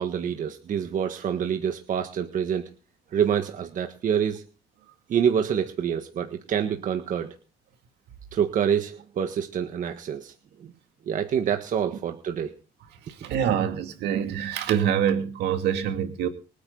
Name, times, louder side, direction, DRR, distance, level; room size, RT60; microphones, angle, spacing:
voice 1, 0.0-2.6 3.1-4.4 5.1-7.3 8.3-10.3 10.6-10.7 11.1-12.5 13.5-13.6, right 8 dB, 50° right, 6 dB, 1.6 m, -26 dB
voice 2, 13.2-16.3, right 9 dB, 80° right, 6 dB, 2.5 m, -25 dB
24.0 x 9.0 x 4.0 m, 0.38 s
cardioid pair, 110°, 17 cm